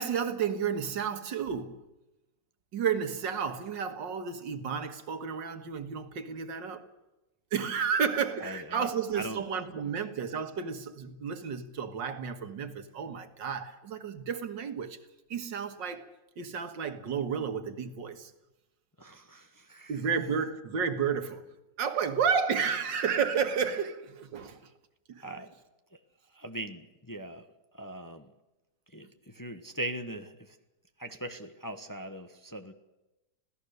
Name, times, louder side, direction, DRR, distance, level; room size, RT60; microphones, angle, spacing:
voice 1, 0.0-1.8 2.7-6.9 7.5-15.0 15.3-16.0 16.4-18.3 19.9-21.4 21.8-24.6 25.1-25.3, right 6 dB, 85° right, 2.2 m, -32 dB
voice 2, 8.4-9.4 19.0-19.9 25.2-25.5 26.3-27.4 27.7-28.3 28.9-30.6 31.0-32.7, right 1 dB, 15° left, 1.0 m, -40 dB
26.5 x 17.0 x 6.7 m
omnidirectional pair, 1.9 m